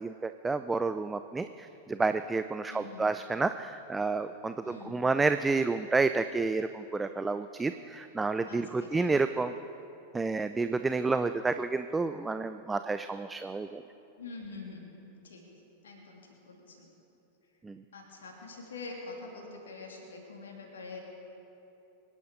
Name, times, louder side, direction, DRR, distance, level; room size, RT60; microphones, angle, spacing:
voice 1, 0.0-9.5 10.1-13.8 17.6-17.8, right 3 dB, 10° right, 10 dB, 0.4 m, -30 dB
voice 2, 2.7-3.1 4.6-5.0 8.4-9.0 14.2-15.4 15.8-16.9 17.9-21.0, left 3 dB, 65° left, 0 dB, 3.0 m, -45 dB
24.5 x 11.0 x 5.3 m, 3.0 s
figure-of-eight pair, 90°, 0 cm